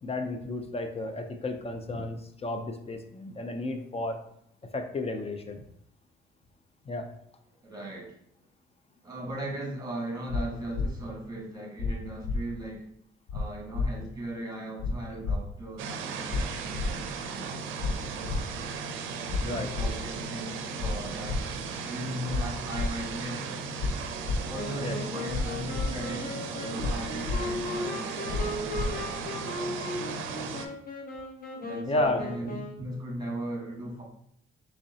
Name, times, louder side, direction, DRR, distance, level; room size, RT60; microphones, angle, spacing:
voice 1, 0.0-4.2 4.7-5.6 6.9-7.1 19.4-19.7 24.8-25.0 31.9-32.2, left 2 dB, 30° left, 6 dB, 0.4 m, -32 dB
voice 2, 7.6-8.2 9.0-12.9 13.3-18.8 19.4-21.4 21.8-23.5 24.1-30.5 31.6-34.0, right 1 dB, 20° right, -2 dB, 1.4 m, -38 dB
sound 1, 10.3-10.4 10.7-10.9 11.8-11.9 12.2-12.4 13.3-13.4 13.7-13.9 14.8-14.9 15.2-15.4 16.3-16.4 16.7-16.9 17.8-17.9 18.2-18.4 19.3-19.4 19.7-19.9 20.8-20.9 21.2-21.4 22.3-22.4 22.7-22.9 23.8-23.9 24.2-24.4 25.3-25.4 25.7-25.9 26.8-26.9 27.2-27.4 28.3-28.4 28.7-28.9, left 4 dB, 85° left, 0.5 m, -29 dB
sound 2, 15.8-30.7, right 5 dB, 90° right, 0.4 m, -36 dB
Wind instrument woodwind instrument, 24.5-32.9, left 2 dB, 45° left, 0.8 m, -37 dB
3.6 x 3.2 x 2.7 m, 0.71 s
cardioid pair, 90°, 20 cm